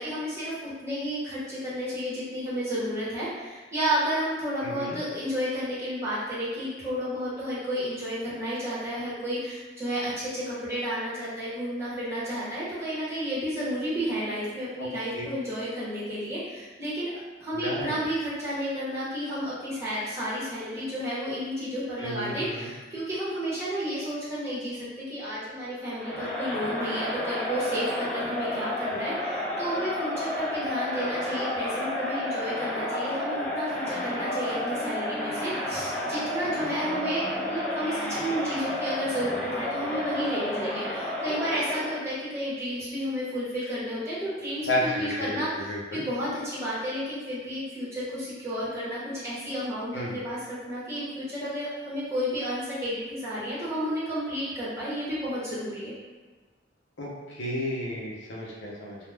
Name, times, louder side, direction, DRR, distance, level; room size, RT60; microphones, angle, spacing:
voice 1, 0.0-45.5 45.9-55.9, equal, 15° right, -10 dB, 0.9 m, -32 dB
voice 2, 4.6-5.0 14.8-14.9 15.1-15.2 17.5-17.9 22.0-22.7 44.7-46.0 49.9-50.2 57.0-59.0, left 1 dB, 75° left, -4 dB, 0.7 m, -32 dB
Crowd, 26.0-42.1, left 1 dB, 10° left, 0.4 m, -31 dB
2.3 x 2.1 x 3.2 m, 1.3 s
head